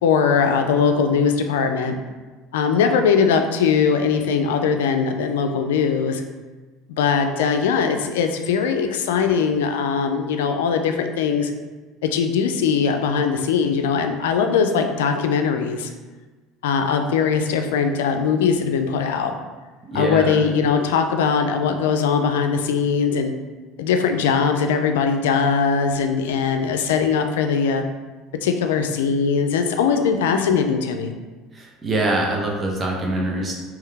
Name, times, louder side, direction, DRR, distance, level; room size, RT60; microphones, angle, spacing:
voice 1, 0.0-2.0 2.5-6.2 6.9-11.5 12.0-15.9 16.6-19.3 19.9-23.3 23.8-27.8 28.4-31.1, left 6 dB, 90° left, 6 dB, 0.4 m, -20 dB
voice 2, 19.8-20.4 31.5-33.6, right 2 dB, 25° right, -1 dB, 0.9 m, -24 dB
3.7 x 3.0 x 3.4 m, 1.3 s
supercardioid pair, 90°, 0 cm